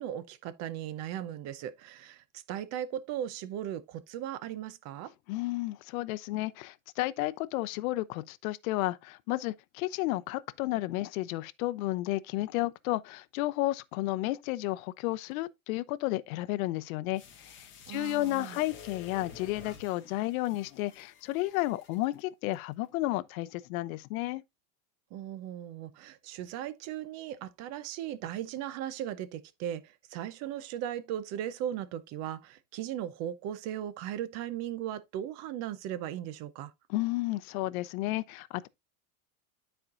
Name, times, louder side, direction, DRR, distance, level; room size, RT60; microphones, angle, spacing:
voice 1, 0.0-5.1 17.9-18.6 25.1-36.7, right 11 dB, 35° right, 0.7 m, -37 dB
voice 2, 5.3-24.4 36.9-38.7, left 18 dB, 70° left, 0.7 m, -32 dB
sound 1, 17.1-22.2 22.5-22.6, left 6 dB, 25° left, 1.7 m, -51 dB
12.5 x 4.5 x 2.5 m
supercardioid pair, 155°, 44 cm